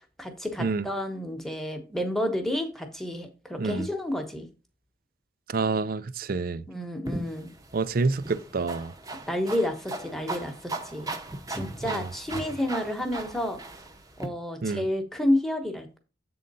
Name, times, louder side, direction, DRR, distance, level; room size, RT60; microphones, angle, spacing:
voice 1, 0.2-4.5 6.7-7.5 9.3-11.1 11.5-13.6 14.2-16.0, left 1 dB, ahead, 1.1 m, -30 dB
voice 2, 5.5-6.6 7.7-8.9 11.8-12.1 14.6-14.8, right 4 dB, 50° right, 0.4 m, -28 dB
sound 1, 7.1-14.3, right 2 dB, 20° right, 0.8 m, -38 dB
7.7 x 3.8 x 5.4 m
head